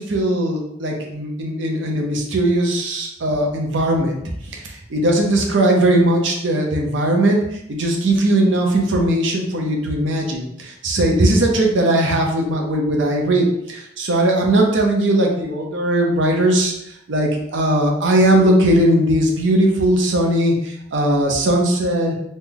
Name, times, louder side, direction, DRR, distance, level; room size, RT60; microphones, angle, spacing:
voice 1, 0.0-4.2 4.5-7.4 7.7-16.7 17.1-22.1, right 1 dB, 85° right, 1 dB, 0.7 m, -18 dB
3.1 x 2.1 x 3.7 m, 0.77 s
head